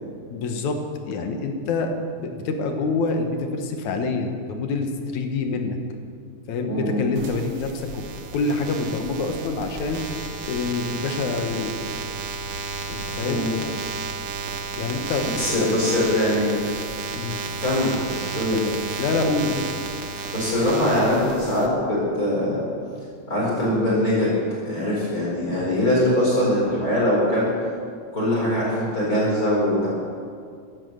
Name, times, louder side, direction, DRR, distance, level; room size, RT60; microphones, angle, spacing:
voice 1, 0.3-0.8 1.1-5.8 6.5-8.0 8.3-10.1 10.5-11.7 12.9-13.5 14.8-15.3 15.8-15.9 17.2-17.4 19.0-19.7 25.6-25.8, left 3 dB, 75° left, 5 dB, 2.6 m, -26 dB
voice 2, 6.7-7.0 13.2-13.5 15.4-16.5 17.6-17.9 18.3-18.6 20.3-22.6 23.3-24.3 24.6-27.5 28.1-29.9, left 1 dB, 25° left, -6 dB, 4.6 m, -22 dB
sound 1, 7.2-21.7, right 5 dB, 65° right, 1.1 m, -32 dB
15.5 x 10.5 x 6.7 m, 2.3 s
omnidirectional pair, 3.5 m